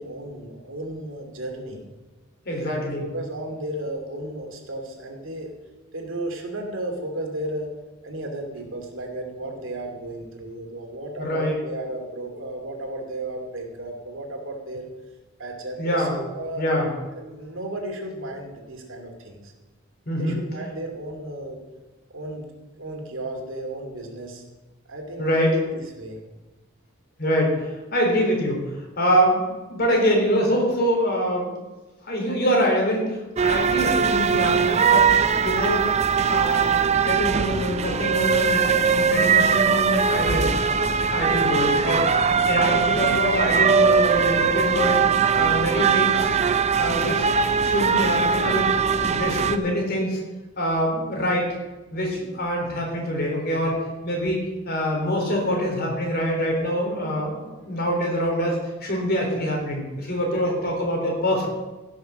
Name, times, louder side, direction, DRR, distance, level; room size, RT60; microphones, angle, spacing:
voice 1, 0.0-1.8 2.5-5.5 5.9-7.7 8.0-14.9 15.4-16.7 17.1-19.5 20.2-21.6 22.1-22.5 22.8-24.4 24.9-26.2 60.1-60.2, right 1 dB, 75° right, 2 dB, 2.5 m, -34 dB
voice 2, 2.5-3.1 11.2-11.6 15.8-16.1 16.6-16.9 20.1-20.4 25.2-25.6 27.2-29.4 29.7-31.5 32.0-35.1 35.4-35.9 36.3-40.5 41.1-45.0 45.3-46.4 46.8-48.7 49.0-50.2 50.6-51.5 51.9-61.5, equal, 50° left, 0 dB, 3.9 m, -25 dB
sound 1, 33.4-49.6, right 6 dB, 35° right, 0.5 m, -21 dB
15.5 x 6.3 x 6.3 m, 1.2 s
head